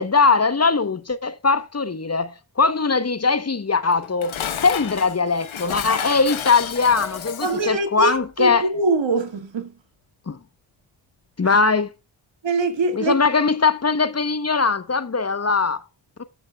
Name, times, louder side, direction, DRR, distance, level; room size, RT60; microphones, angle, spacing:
voice 1, 0.0-4.3 4.6-8.7 10.3-10.4 11.4-11.9 12.9-15.8 16.2-16.3, left 4 dB, 35° left, 0.9 m, -20 dB
Dishes pots and pans, 3.9-7.7, left 8 dB, 90° left, 1.1 m, -31 dB
voice 2, 7.4-9.7 11.4-11.6 12.4-13.1, right 3 dB, 70° right, 1.9 m, -23 dB
19.5 x 6.6 x 2.2 m
cardioid pair, 45°, 46 cm